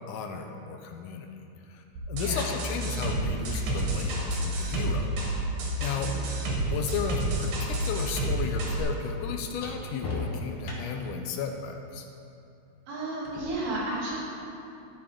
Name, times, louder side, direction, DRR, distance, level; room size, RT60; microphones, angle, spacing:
voice 1, 0.1-1.3 1.7-5.1 5.8-6.1 6.7-12.1, left 6 dB, 80° left, 4 dB, 2.1 m, -34 dB
sound 1, 1.9-2.0 3.1-7.2 7.4-11.2 13.2-13.5, left 3 dB, 60° left, 1.5 m, -41 dB
sound 2, 2.0-8.8, right 1 dB, 80° right, 3.2 m, -30 dB
voice 2, 12.9-14.2, right 2 dB, 45° right, -9 dB, 3.3 m, -32 dB
12.5 x 6.9 x 3.7 m, 2.6 s
omnidirectional pair, 3.9 m